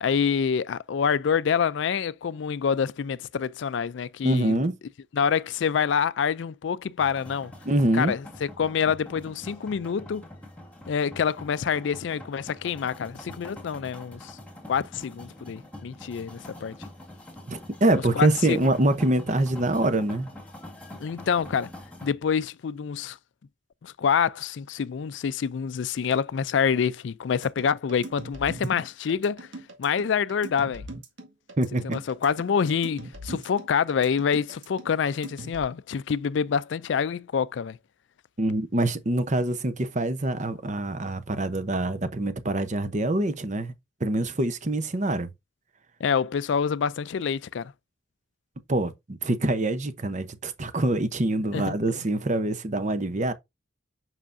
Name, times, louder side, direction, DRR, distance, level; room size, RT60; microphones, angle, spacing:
voice 1, 0.0-4.6 5.1-7.5 7.9-8.2 8.6-10.2 10.9-14.4 14.7-16.7 18.2-18.6 21.0-21.7 22.0-23.2 23.8-29.5 29.8-30.8 31.9-37.8 46.0-47.7 51.5-51.8, left 7 dB, 65° left, 0.4 m, -26 dB
voice 2, 4.2-4.7 7.6-8.1 17.5-20.3 31.6-32.0 38.4-43.7 44.0-45.3 48.7-53.3, right 1 dB, 40° right, 0.8 m, -25 dB
sound 1, 7.0-22.1, left 1 dB, 10° left, 1.9 m, -45 dB
sound 2, 27.4-35.6, right 1 dB, 80° right, 1.9 m, -41 dB
7.4 x 5.7 x 2.6 m
head